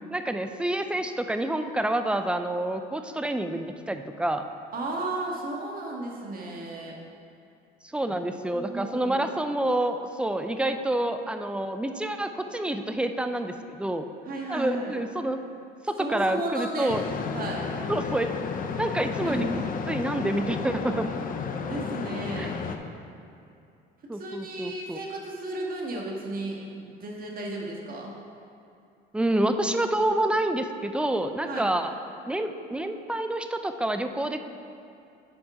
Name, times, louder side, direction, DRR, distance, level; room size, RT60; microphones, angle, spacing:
voice 1, 0.1-4.4 7.9-14.1 14.5-15.4 15.8-17.0 17.9-18.3 18.8-19.5 19.9-21.1 22.4-22.5 24.1-25.0 29.1-31.9 32.3-34.4, right 1 dB, 5° right, 8 dB, 0.4 m, -28 dB
voice 2, 4.7-7.0 8.5-9.2 14.2-15.0 16.0-17.0 17.3-17.7 19.2-19.6 21.7-22.6 24.1-28.1 31.4-31.7, right 2 dB, 45° right, -1 dB, 1.6 m, -34 dB
sound 1, 16.9-22.8, left 5 dB, 40° left, 0.6 m, -32 dB
8.5 x 4.5 x 4.9 m, 2.6 s
supercardioid pair, 90°, 21 cm